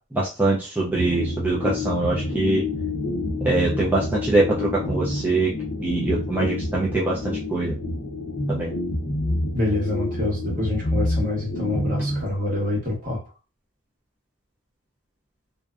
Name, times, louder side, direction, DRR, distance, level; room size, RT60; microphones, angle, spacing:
voice 1, 0.1-2.6 3.4-5.5 5.8-7.7 8.5-8.7, right 2 dB, 10° right, -5 dB, 0.4 m, -23 dB
sound 1, 0.9-12.8, left 1 dB, 65° left, 0.7 m, -28 dB
voice 2, 9.5-13.2, left 2 dB, 40° right, -4 dB, 1.2 m, -26 dB
2.6 x 2.1 x 2.3 m, 0.34 s
head